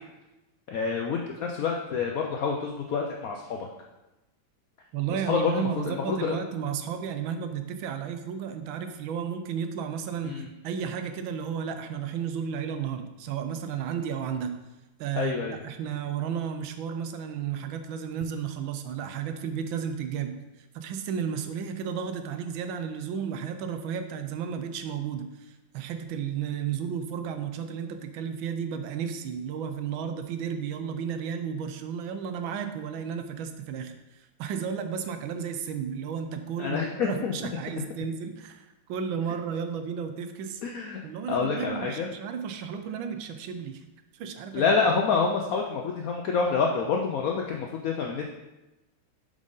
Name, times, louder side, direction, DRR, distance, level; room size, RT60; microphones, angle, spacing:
voice 1, 0.7-3.7 5.3-6.4 10.2-10.5 15.2-15.6 36.6-37.3 40.6-41.0 41.3-42.1 44.5-48.3, left 5 dB, 75° left, 1 dB, 0.8 m, -27 dB
voice 2, 4.9-14.6 15.0-25.5 25.7-33.9 34.4-40.6 41.0-43.8 44.1-44.7, right 7 dB, 80° right, 8 dB, 1.4 m, -33 dB
7.3 x 5.0 x 3.9 m, 1.0 s
omnidirectional pair, 2.2 m